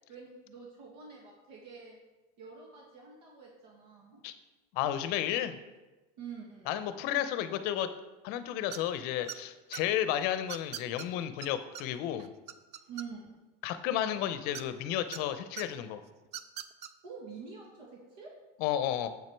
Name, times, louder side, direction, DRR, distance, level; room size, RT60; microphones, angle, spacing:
voice 1, 0.1-2.0 2.4-4.2 6.2-6.8 12.9-13.4 17.0-18.3, right 5 dB, 90° right, -2 dB, 1.6 m, -47 dB
voice 2, 4.7-5.6 6.7-7.9 8.2-12.3 13.6-16.0 18.6-19.1, left 11 dB, 55° left, 11 dB, 0.6 m, -32 dB
sound 1, 8.7-9.0 9.3-9.8 10.5-11.1 11.4-11.5 11.7-11.8 12.2-13.4 14.5-15.2 15.6-15.7 16.2-16.9, right 10 dB, 35° right, 0.4 m, -41 dB
7.4 x 6.0 x 4.5 m, 1.1 s
supercardioid pair, 145°, 20 cm